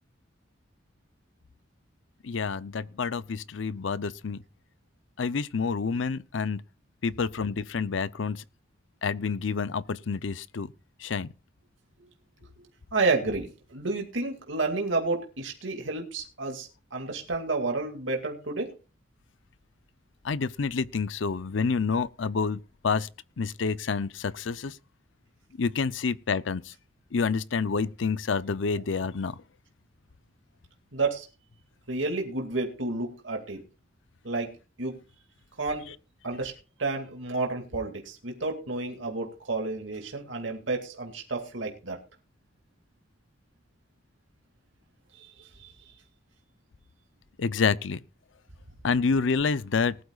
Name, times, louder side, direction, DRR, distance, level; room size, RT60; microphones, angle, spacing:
voice 1, 2.2-4.4 5.2-6.6 7.0-8.4 9.0-10.7 11.0-11.3 20.2-23.1 23.4-24.8 25.6-26.7 27.1-29.4 35.9-36.0 47.4-48.0 48.8-50.0, left 5 dB, 80° left, 0.6 m, -28 dB
voice 2, 12.9-18.7 30.9-31.3 31.9-33.6 34.2-35.0 35.6-35.9 36.2-36.5 36.8-42.0 45.1-45.7, right 3 dB, 90° right, 2.3 m, -31 dB
19.5 x 12.0 x 2.4 m
head